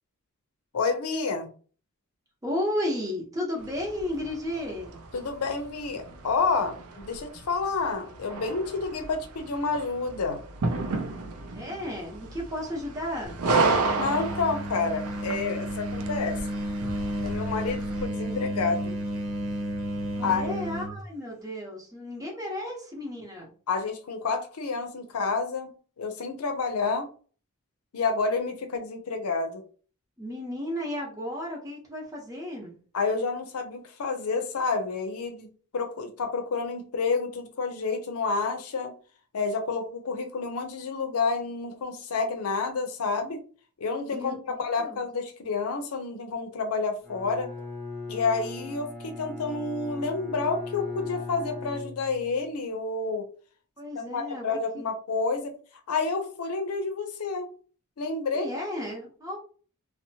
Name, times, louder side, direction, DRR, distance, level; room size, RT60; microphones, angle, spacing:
voice 1, 0.7-1.5 5.1-10.4 13.9-16.4 17.2-19.0 20.2-20.6 23.7-25.7 26.0-27.1 27.9-29.6 32.9-35.5 35.7-38.9 39.3-43.4 43.8-47.5 48.1-53.3 54.1-55.5 55.9-57.5 58.0-58.5, left 4 dB, 85° left, 0.5 m, -29 dB
voice 2, 2.4-5.0 11.5-13.4 20.1-23.5 30.2-32.8 44.1-45.0 53.8-54.4 54.7-54.8 58.3-59.4, left 1 dB, 15° right, 0.8 m, -33 dB
sound 1, 3.6-18.1, right 3 dB, 85° right, 0.4 m, -33 dB
sound 2, 13.3-21.0, equal, 70° right, 0.8 m, -32 dB
Bowed string instrument, 47.0-52.5, left 3 dB, 5° left, 0.4 m, -38 dB
2.7 x 2.0 x 2.7 m
head